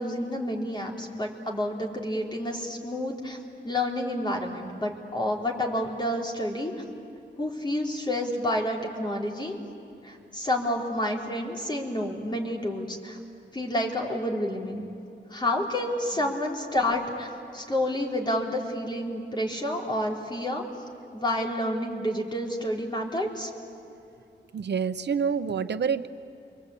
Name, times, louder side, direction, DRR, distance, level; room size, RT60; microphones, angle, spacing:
voice 1, 0.0-3.4 3.6-6.7 7.4-9.5 10.0-13.2 13.5-14.9 15.3-17.3 17.5-20.6 21.1-23.5, left 1 dB, 25° left, -1 dB, 3.6 m, -29 dB
voice 2, 24.5-26.1, right 6 dB, 70° right, 11 dB, 0.9 m, -28 dB
29.5 x 23.5 x 8.5 m, 2.7 s
wide cardioid pair, 150°, 19 cm